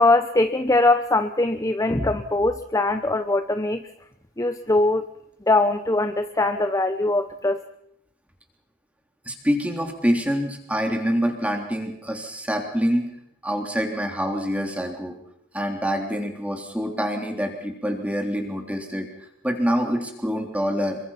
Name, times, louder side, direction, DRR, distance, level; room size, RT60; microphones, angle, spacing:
voice 1, 0.0-3.8 4.4-5.1 5.5-7.6, left 2 dB, 15° left, 9 dB, 0.8 m, -21 dB
voice 2, 9.3-13.1 13.4-15.2 15.5-19.1 19.4-21.0, equal, 5° right, 3 dB, 3.5 m, -26 dB
27.5 x 23.5 x 5.8 m, 0.76 s
head